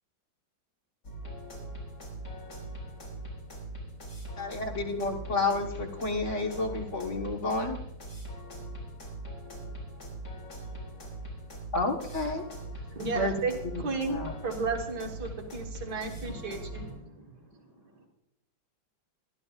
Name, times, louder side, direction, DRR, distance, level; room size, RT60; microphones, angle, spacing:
sound 1, 1.0-16.9, right 1 dB, 60° left, 5.2 m, -41 dB
voice 1, 4.4-7.8 11.7-12.4 13.1-13.3 14.0-14.3, left 3 dB, 45° left, 1 dB, 1.5 m, -30 dB
voice 2, 12.9-17.3, right 3 dB, 60° right, 1 dB, 2.1 m, -34 dB
voice 3, 16.7-18.1, equal, 20° left, -2 dB, 3.7 m, -63 dB
22.0 x 12.0 x 2.4 m, 0.83 s
omnidirectional pair, 2.0 m